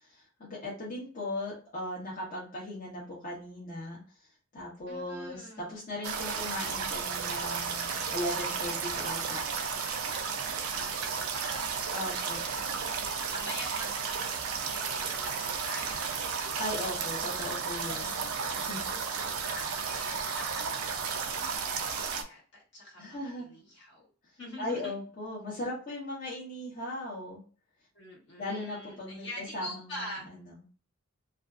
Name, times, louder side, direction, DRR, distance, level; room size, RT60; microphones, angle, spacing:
voice 1, 0.4-4.0 4.5-9.4 10.7-10.8 11.9-12.4 16.6-18.2 18.6-19.2 23.0-23.5 24.6-27.4 28.4-29.3 29.5-30.1 30.4-30.5, left 1 dB, 40° left, -6 dB, 0.7 m, -38 dB
voice 2, 4.9-5.7 10.6-16.4 19.2-24.1 24.4-24.9 27.9-30.3, left 1 dB, 60° left, -1 dB, 1.0 m, -45 dB
sound 1, 6.0-22.2, right 5 dB, 85° right, 0.4 m, -33 dB
2.5 x 2.3 x 2.3 m, 0.39 s
head